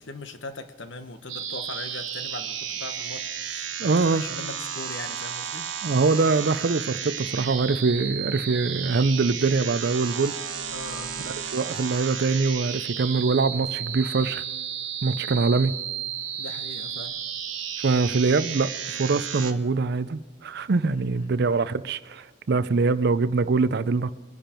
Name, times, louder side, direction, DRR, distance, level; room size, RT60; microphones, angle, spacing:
voice 1, 0.0-5.7 10.7-11.1 16.3-17.2 20.9-21.5, left 3 dB, 60° left, 1.1 m, -40 dB
sound 1, 1.3-19.5, right 8 dB, 70° right, 1.1 m, -33 dB
voice 2, 3.8-4.2 5.8-10.4 11.2-14.4 15.0-15.7 17.8-24.1, right 4 dB, 55° right, 0.5 m, -23 dB
22.5 x 10.5 x 4.4 m
head